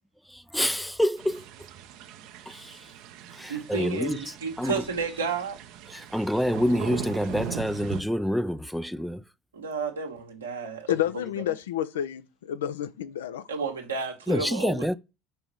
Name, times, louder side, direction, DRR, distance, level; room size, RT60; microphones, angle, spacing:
voice 1, 0.3-1.4 2.5-2.9 3.3-4.9 5.9-9.2 14.3-15.0, equal, ahead, 0.5 m, -27 dB
sound 1, 1.2-8.0, right 9 dB, 55° right, 0.7 m, -40 dB
voice 2, 3.5-5.6 9.5-10.9 13.5-14.7, right 4 dB, 80° right, 1.4 m, -31 dB
voice 3, 10.9-13.5, left 11 dB, 70° left, 0.6 m, -30 dB
6.8 x 4.8 x 6.9 m
figure-of-eight pair, 65°, 0 cm